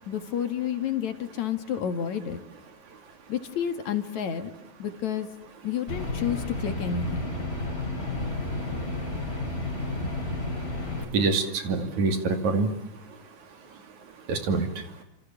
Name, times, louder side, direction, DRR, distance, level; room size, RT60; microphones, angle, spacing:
voice 1, 0.1-2.4 3.3-4.5 4.8-5.3 5.6-7.4, left 8 dB, 70° left, 7 dB, 3.2 m, -30 dB
sound 1, 5.9-11.0, left 2 dB, 20° left, 5.5 m, -31 dB
voice 2, 11.1-12.7 14.3-14.7, right 3 dB, 70° right, 6 dB, 3.9 m, -25 dB
29.0 x 27.0 x 7.1 m, 0.79 s
omnidirectional pair, 3.4 m